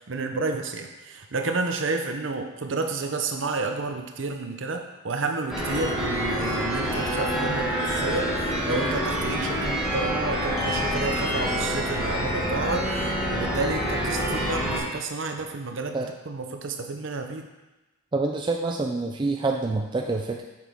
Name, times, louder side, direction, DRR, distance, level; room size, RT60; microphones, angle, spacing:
voice 1, 0.0-17.5, right 3 dB, 60° right, 5 dB, 0.7 m, -30 dB
sound 1, 5.5-14.8, equal, 5° right, 1.7 m, -27 dB
voice 2, 18.1-20.4, right 3 dB, 20° right, 2 dB, 0.3 m, -26 dB
7.8 x 5.9 x 3.6 m, 1.1 s
head